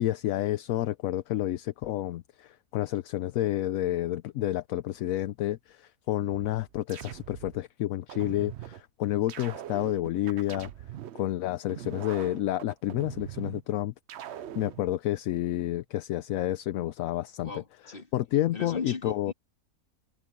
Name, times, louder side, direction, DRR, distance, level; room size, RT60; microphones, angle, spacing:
voice 1, 0.0-10.7 11.1-13.9 14.6-17.6 18.1-19.3, left 13 dB, 70° left, 0.9 m, -30 dB
sound 1, 6.3-7.6 8.1-8.8 9.3-11.2 11.7-13.6 14.1-14.8, right 11 dB, 60° right, 0.7 m, -42 dB
voice 2, 17.4-18.1 18.5-19.3, left 4 dB, 35° left, 2.8 m, -38 dB
omnidirectional pair, 1.6 m